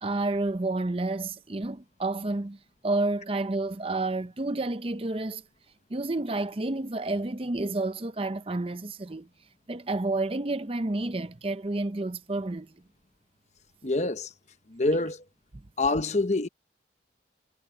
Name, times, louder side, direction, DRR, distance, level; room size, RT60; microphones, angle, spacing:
voice 1, 0.0-2.6 2.8-5.4 5.9-9.3 9.7-12.7, right 2 dB, 30° right, 0.6 m, -30 dB
voice 2, 13.8-14.3 14.7-15.2 15.8-16.5, left 2 dB, 40° left, 1.0 m, -26 dB
head